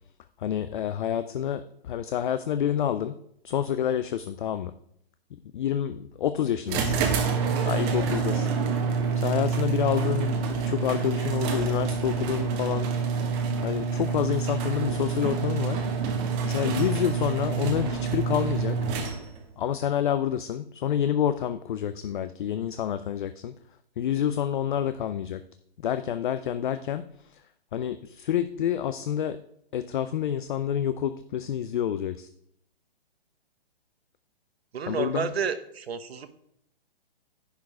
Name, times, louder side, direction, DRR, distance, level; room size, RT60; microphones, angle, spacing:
voice 1, 0.4-3.1 3.4-4.7 5.5-6.9 7.6-8.5 9.1-12.9 13.6-15.8 16.4-18.8 19.6-23.5 24.0-25.4 25.8-27.4 27.7-29.4 29.7-32.3 34.9-35.3, left 9 dB, 55° left, 12 dB, 0.5 m, -28 dB
sound 1, 6.7-19.5, right 5 dB, 25° right, 1.1 m, -27 dB
voice 2, 34.7-36.3, right 6 dB, 80° right, 10 dB, 1.1 m, -31 dB
10.5 x 4.9 x 4.7 m, 0.71 s
hypercardioid pair, 150°, 31 cm